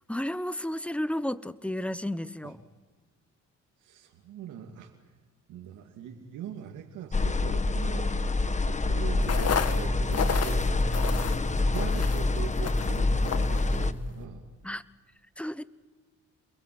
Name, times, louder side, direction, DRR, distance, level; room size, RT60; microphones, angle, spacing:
voice 1, 0.1-2.6 14.6-14.8 15.4-15.6, left 1 dB, 5° left, 15 dB, 1.0 m, -32 dB
voice 2, 3.8-4.9 5.5-8.1 8.6-11.2 11.6-14.5, right 9 dB, 85° right, 1 dB, 2.6 m, -42 dB
sound 1, 7.1-13.9, left 2 dB, 25° left, 1.3 m, -26 dB
sound 2, 9.2-14.3, left 5 dB, 55° left, 2.2 m, -33 dB
28.5 x 22.0 x 7.8 m, 1.4 s
cardioid pair, 90°, 30 cm